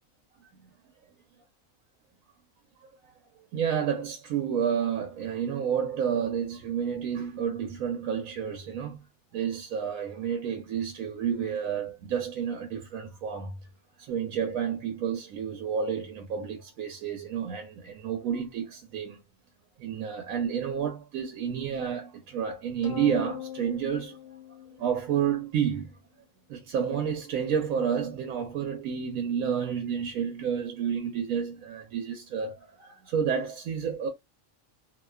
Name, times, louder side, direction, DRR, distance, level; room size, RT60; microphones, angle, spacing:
voice 1, 3.5-9.0 9.3-13.5 14.0-19.2 19.8-24.2 24.8-25.9 26.5-34.1, right 8 dB, 80° right, 1.0 m, -30 dB
sound 1, 22.8-25.4, left 11 dB, 60° left, 0.8 m, -40 dB
2.6 x 2.2 x 2.2 m
omnidirectional pair, 1.4 m